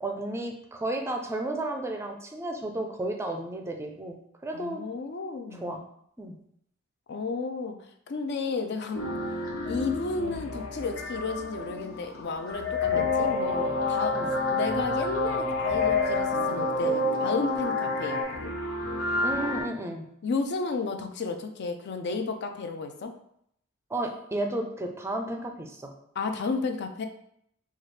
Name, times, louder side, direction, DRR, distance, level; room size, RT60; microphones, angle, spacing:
voice 1, 0.0-4.8 5.5-5.8 6.2-6.4 12.9-13.1 14.1-14.3 19.2-20.1 23.9-25.9, right 1 dB, 15° right, 3 dB, 0.4 m, -33 dB
voice 2, 4.5-5.8 7.1-7.8 8.1-9.0 9.6-14.2 14.5-18.5 20.2-23.1 26.2-27.0, left 4 dB, 55° left, 6 dB, 0.4 m, -32 dB
sound 1, 8.9-19.6, left 3 dB, 85° left, 0.9 m, -31 dB
sound 2, 12.9-18.2, left 2 dB, 30° left, 0.9 m, -29 dB
4.4 x 2.4 x 3.2 m, 0.71 s
head